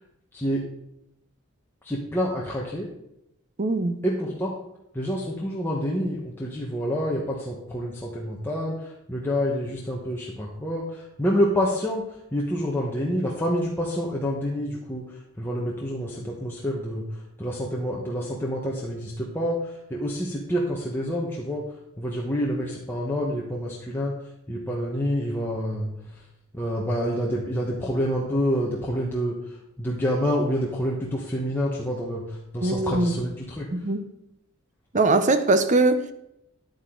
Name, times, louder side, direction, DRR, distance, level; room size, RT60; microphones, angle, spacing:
voice 1, 0.3-0.6 1.8-2.9 4.0-4.6 4.9-21.6 22.0-26.2 26.5-33.7, equal, 10° left, 1.2 m, -28 dB
voice 2, 3.6-4.0 32.6-33.2 33.7-34.0 34.9-36.1, right 2 dB, 35° right, 0.7 m, -21 dB
10.5 x 9.2 x 3.9 m
head